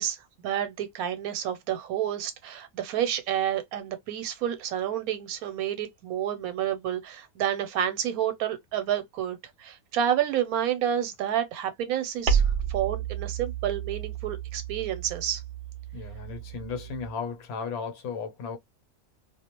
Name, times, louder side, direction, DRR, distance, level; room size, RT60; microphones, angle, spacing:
voice 1, 0.0-12.4 12.7-15.4, right 10 dB, 85° right, 1.1 m, -29 dB
sound 1, 12.3-17.1, right 7 dB, 60° right, 0.8 m, -31 dB
voice 2, 15.9-18.6, left 5 dB, 80° left, 1.1 m, -35 dB
2.4 x 2.1 x 2.9 m
omnidirectional pair, 1.5 m